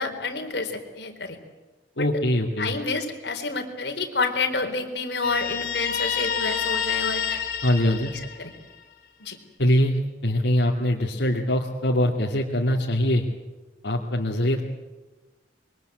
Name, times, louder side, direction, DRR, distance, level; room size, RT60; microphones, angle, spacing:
voice 1, 0.0-1.4 2.0-2.1 2.6-7.4 8.1-8.5 9.2-9.4, left 3 dB, 70° left, 4 dB, 4.1 m, -29 dB
voice 2, 2.0-2.7 7.6-8.1 9.6-13.3 13.8-14.6, left 1 dB, 85° left, -3 dB, 2.5 m, -23 dB
Guitar, 5.2-8.8, left 8 dB, 55° left, 3.3 m, -28 dB
26.0 x 23.5 x 8.0 m, 1.2 s
head